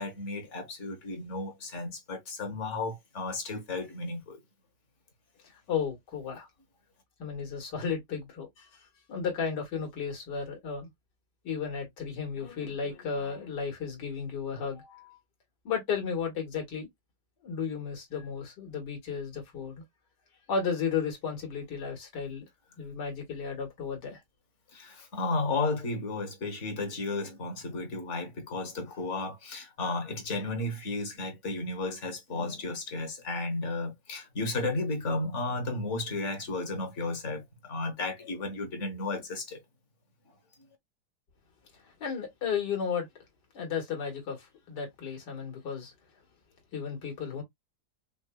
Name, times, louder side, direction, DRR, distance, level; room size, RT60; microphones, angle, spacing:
voice 1, 0.0-4.4 24.7-39.6, left 2 dB, 50° left, 1.4 m, -33 dB
voice 2, 5.7-6.5 7.2-8.7 9.1-10.9 11.4-15.2 15.6-16.9 17.4-19.8 20.5-22.5 22.8-24.2 41.7-43.1 43.5-45.9 46.7-47.4, left 6 dB, 85° left, 2.1 m, -34 dB
5.2 x 2.2 x 2.2 m
omnidirectional pair, 1.8 m